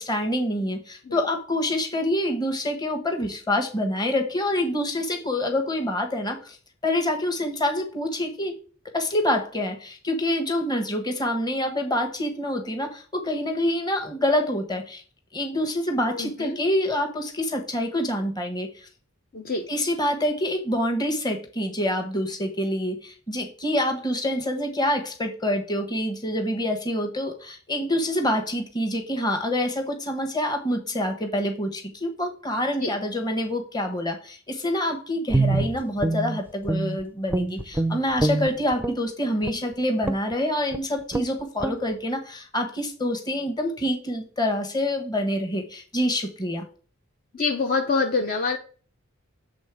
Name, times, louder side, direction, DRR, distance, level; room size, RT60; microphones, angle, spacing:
voice 1, 0.0-6.6 6.8-8.6 8.9-15.0 15.3-18.9 19.7-46.7, left 1 dB, 20° left, 3 dB, 1.3 m, -26 dB
voice 2, 16.1-16.6 19.3-19.7 32.8-32.9 47.3-48.6, left 4 dB, 45° left, 3 dB, 0.8 m, -25 dB
Guitar, 35.3-37.0 37.3-39.0 39.4-39.7 40.0-40.3 40.7-40.8 41.1-41.3 41.6-41.8, right 2 dB, 10° right, 0.5 m, -25 dB
7.5 x 3.8 x 4.9 m, 0.39 s
head